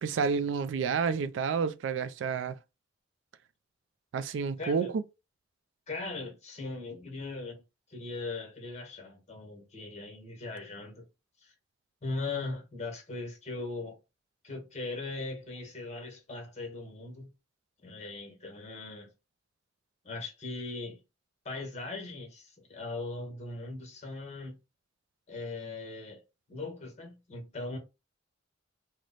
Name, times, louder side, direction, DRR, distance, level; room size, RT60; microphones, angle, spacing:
voice 1, 0.0-2.6 4.1-5.0, right 5 dB, 75° right, 0.3 m, -30 dB
voice 2, 4.6-4.9 5.9-7.6 7.9-11.1 11.4-11.5 12.0-14.0 14.4-17.3 17.8-19.1 20.0-21.0 21.4-24.6 25.3-26.2 26.5-27.8, left 3 dB, 35° left, 1.1 m, -39 dB
3.1 x 2.1 x 3.9 m
head